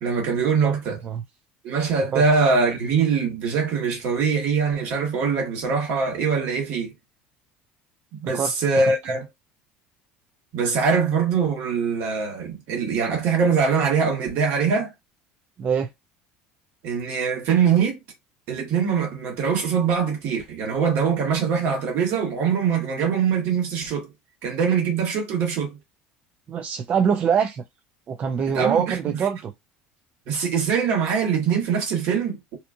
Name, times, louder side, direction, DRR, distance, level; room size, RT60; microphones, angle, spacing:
voice 1, 0.0-1.0 1.6-6.9 8.2-9.3 10.5-14.9 16.8-18.0 18.5-24.1 24.4-25.8 28.5-29.2 30.3-32.6, right 5 dB, 65° right, 1.4 m, -23 dB
voice 2, 15.6-15.9 26.5-27.6 28.1-29.5, right 7 dB, 35° right, 0.4 m, -24 dB
2.7 x 2.3 x 2.6 m
supercardioid pair, 115°, 4 cm